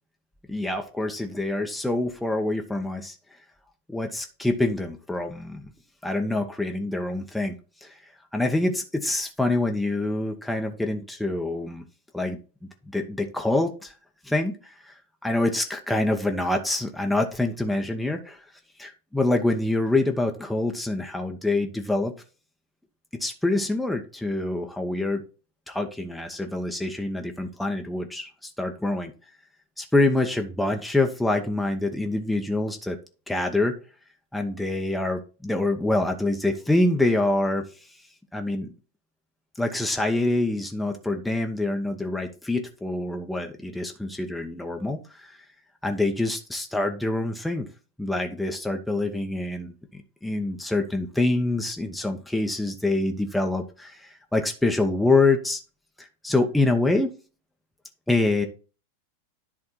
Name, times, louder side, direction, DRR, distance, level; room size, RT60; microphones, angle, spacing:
voice 1, 0.5-3.2 3.9-5.7 6.0-7.5 7.8-8.0 8.3-11.8 12.1-12.4 12.9-13.9 14.2-14.9 15.2-18.4 18.8-22.1 23.2-25.2 25.7-29.1 29.8-33.0 33.3-33.7 34.3-37.6 38.3-38.7 39.6-45.4 45.8-47.7 48.0-49.7 50.2-55.6 56.0-57.1 58.1-58.5, left 2 dB, 5° left, 3 dB, 0.8 m, -26 dB
10.5 x 3.5 x 4.3 m, 0.34 s
figure-of-eight pair, 90°, 0 cm